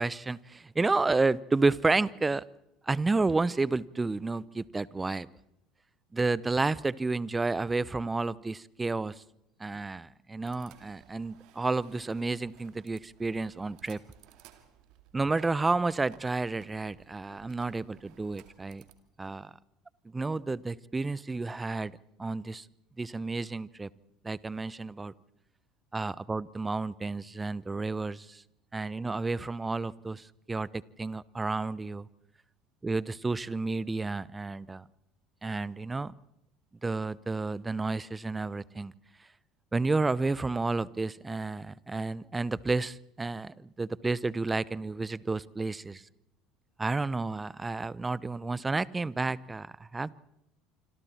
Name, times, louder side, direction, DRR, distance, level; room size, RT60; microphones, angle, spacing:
voice 1, 0.0-2.4 2.9-5.3 6.1-9.1 9.6-14.0 15.1-18.8 19.2-19.5 20.1-21.9 22.2-22.7 23.0-23.9 24.2-25.1 25.9-28.4 28.7-32.1 32.8-34.8 35.4-36.1 36.8-38.9 39.7-46.0 46.8-50.1, right 3 dB, 15° right, 22 dB, 0.8 m, -31 dB
sound 1, 10.4-19.0, right 12 dB, 60° right, 2.4 m, -59 dB
26.5 x 26.5 x 4.4 m, 0.83 s
hypercardioid pair, 70°, 0 cm